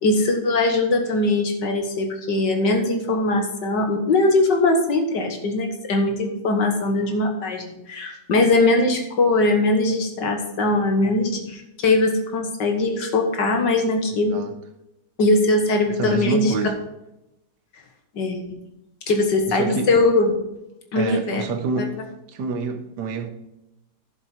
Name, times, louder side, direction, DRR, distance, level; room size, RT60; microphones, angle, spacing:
voice 1, 0.0-14.4 15.2-16.5 18.2-18.4 19.1-20.3 20.9-21.4, left 2 dB, 85° left, 2.2 m, -21 dB
voice 2, 16.0-16.8 19.5-20.0 21.0-22.0 22.3-23.3, right 4 dB, 75° right, 1.6 m, -27 dB
11.0 x 7.5 x 4.4 m
omnidirectional pair, 1.8 m